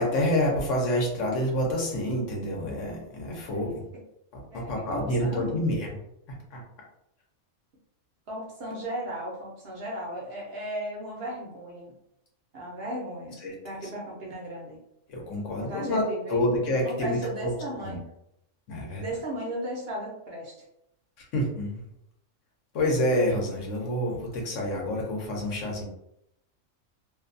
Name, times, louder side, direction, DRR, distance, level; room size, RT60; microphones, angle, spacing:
voice 1, 0.0-3.8 4.3-5.9 6.3-6.6 13.4-13.5 13.8-13.9 15.1-16.0 16.3-17.5 17.8-18.0 18.7-19.0 21.2-21.8 22.7-25.8, left 1 dB, 70° left, -1 dB, 1.0 m, -28 dB
voice 2, 3.3-3.8 4.5-5.6 8.3-11.9 12.5-13.4 13.6-14.8 15.6-16.5 16.8-18.0 19.0-20.5, right 1 dB, 55° right, -3 dB, 0.8 m, -36 dB
2.6 x 2.2 x 2.5 m, 0.79 s
omnidirectional pair, 1.4 m